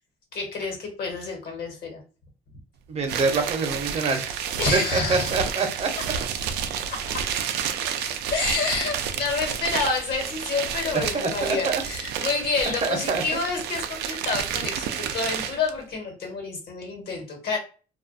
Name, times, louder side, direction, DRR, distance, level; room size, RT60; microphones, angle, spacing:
voice 1, 0.3-2.0 4.6-5.4 6.9-7.2 8.3-17.6, left 4 dB, 65° left, 1 dB, 1.2 m, -28 dB
voice 2, 2.9-4.3 4.7-5.9 10.9-11.8 12.8-13.2, right 4 dB, 40° right, 4 dB, 0.7 m, -25 dB
sound 1, 3.0-15.7, right 8 dB, 80° right, 0.4 m, -30 dB
2.4 x 2.2 x 2.5 m, 0.36 s
cardioid pair, 110°, 17 cm